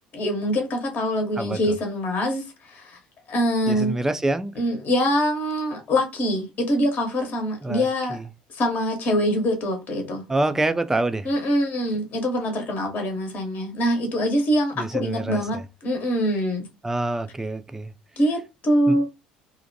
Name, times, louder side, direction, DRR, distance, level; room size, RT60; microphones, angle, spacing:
voice 1, 0.1-3.0 3.3-4.0 4.5-8.2 8.5-10.2 11.2-16.7 18.2-19.1, equal, 45° left, 0.8 m, -24 dB
voice 2, 3.7-4.5 7.6-8.2 10.3-11.3 14.8-15.6 16.8-17.9 18.9-19.0, right 2 dB, 10° right, 0.3 m, -26 dB
2.5 x 2.1 x 2.6 m
hypercardioid pair, 60°, 4 cm